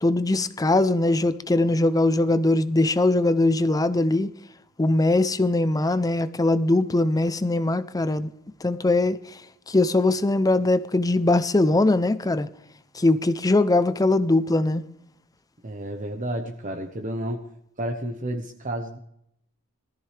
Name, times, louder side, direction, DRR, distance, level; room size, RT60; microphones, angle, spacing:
voice 1, 0.0-4.3 4.8-8.3 8.6-9.2 9.7-12.5 13.0-14.8, left 2 dB, 15° left, 0.5 m, -21 dB
voice 2, 15.6-17.5 17.8-19.0, right 1 dB, 35° right, 1.0 m, -31 dB
19.0 x 14.0 x 3.3 m
head